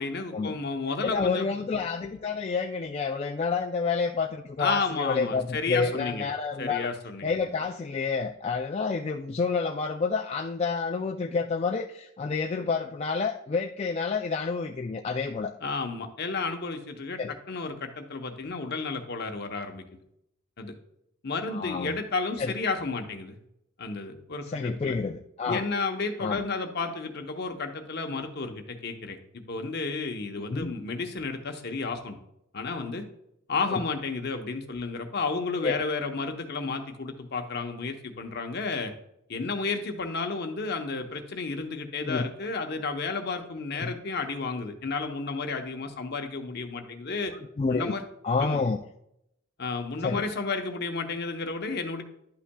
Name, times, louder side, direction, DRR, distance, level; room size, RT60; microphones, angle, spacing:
voice 1, 0.0-1.5 4.6-6.3 6.6-7.4 15.6-17.2 17.5-19.8 20.6-20.7 21.2-23.4 23.8-24.9 25.5-32.2 32.5-33.0 33.5-38.9 39.3-47.3 47.7-48.1 48.4-48.6 49.6-52.0, left 4 dB, 50° left, 5 dB, 0.9 m, -32 dB
voice 2, 1.0-6.9 7.2-15.5 17.2-17.3 21.5-22.0 22.4-22.5 24.5-25.6 26.2-26.4 30.4-30.7 33.7-33.8 35.6-35.8 42.0-42.3 43.8-43.9 47.6-47.9 48.2-48.8 50.0-50.2, left 4 dB, 30° left, 3 dB, 0.3 m, -29 dB
11.0 x 5.7 x 2.2 m, 0.78 s
head